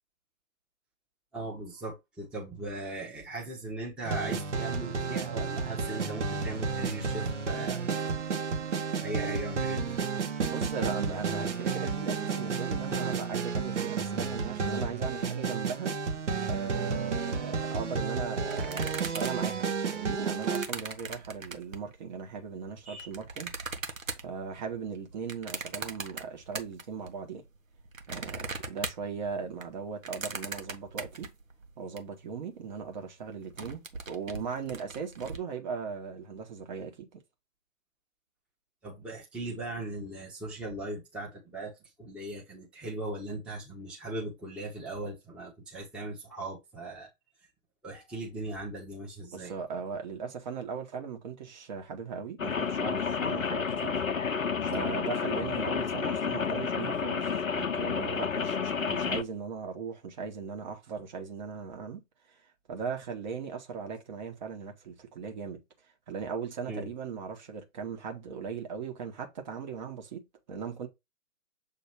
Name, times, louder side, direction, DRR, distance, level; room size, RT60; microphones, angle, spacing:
voice 1, 1.3-8.0 9.0-10.0 22.8-23.1 38.8-41.7 42.0-47.1 47.8-49.5 66.7-66.9, right 2 dB, ahead, 1.0 m, -38 dB
sound 1, 4.0-20.7, right 5 dB, 60° right, 1.3 m, -32 dB
voice 2, 10.4-16.0 16.5-23.5 24.2-27.4 28.1-31.3 31.8-37.2 49.3-54.0 54.6-62.0 62.7-65.6 66.1-70.9, right 6 dB, 35° right, 1.4 m, -38 dB
sound 2, 18.5-21.9 22.6-27.1 27.5-32.0 32.4-32.5 32.7-33.0 33.3-35.4, right 4 dB, 80° right, 1.4 m, -40 dB
Rain, 52.4-59.2, left 6 dB, 80° left, 0.8 m, -30 dB
7.2 x 3.0 x 4.5 m
figure-of-eight pair, 135°, 40 cm